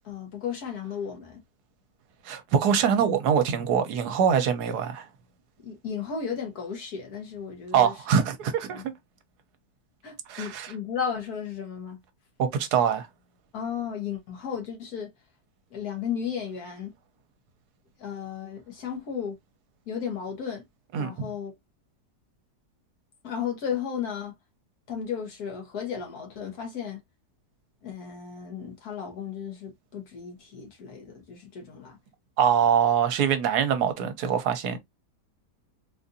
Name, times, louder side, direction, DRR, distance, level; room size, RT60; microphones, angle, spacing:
voice 1, 0.0-1.4 5.6-7.9 8.7-8.8 10.0-12.0 13.5-15.1 15.7-16.9 18.0-19.4 19.9-20.6 21.0-21.5 23.2-24.3 24.9-27.0 27.8-32.0, left 7 dB, 65° left, 1.5 m, -34 dB
voice 2, 2.3-5.1 7.7-8.8 10.3-10.7 12.4-13.1 20.9-21.1 32.4-34.8, right 7 dB, 75° right, 1.2 m, -23 dB
4.0 x 2.5 x 2.6 m
omnidirectional pair, 1.8 m